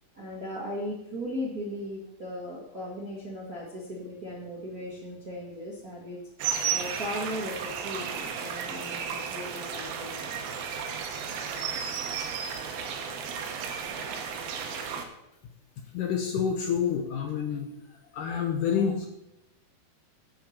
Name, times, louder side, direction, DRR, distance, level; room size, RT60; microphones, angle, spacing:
voice 1, 0.1-10.4, left 1 dB, 40° right, -4 dB, 1.4 m, -37 dB
sound 1, 6.4-15.0, right 7 dB, 75° right, 2.9 m, -33 dB
voice 2, 15.9-17.7 18.1-19.1, left 7 dB, 70° left, 4 dB, 2.1 m, -28 dB
8.7 x 7.5 x 7.3 m, 0.88 s
omnidirectional pair, 4.5 m